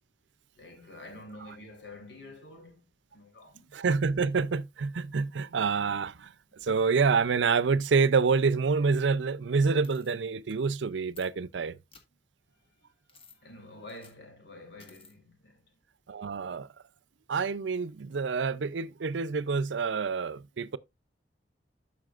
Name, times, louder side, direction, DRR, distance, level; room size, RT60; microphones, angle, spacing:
voice 1, 0.5-2.8 3.1-3.7 12.5-15.6, left 2 dB, 70° left, 3.4 m, -48 dB
voice 2, 3.7-11.8 16.1-16.7 17.3-20.8, right 5 dB, 85° right, 0.5 m, -27 dB
sound 1, 9.8-10.1 10.7-10.8 11.1-11.3 11.9-12.0 13.1-13.4 13.9-14.2 14.8-15.1, left 3 dB, 35° left, 1.7 m, -54 dB
12.5 x 5.7 x 2.4 m
head